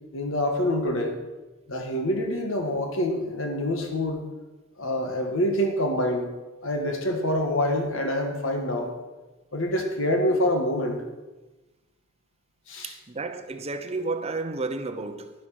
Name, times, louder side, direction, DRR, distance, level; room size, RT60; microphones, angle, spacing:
voice 1, 0.1-1.2 1.7-4.3 4.8-6.3 6.6-8.9 9.5-11.0 12.7-12.9, left 1 dB, 65° left, 1.7 m, -26 dB
voice 2, 12.8-15.3, right 3 dB, 30° right, 0.7 m, -32 dB
10.5 x 10.5 x 6.0 m
head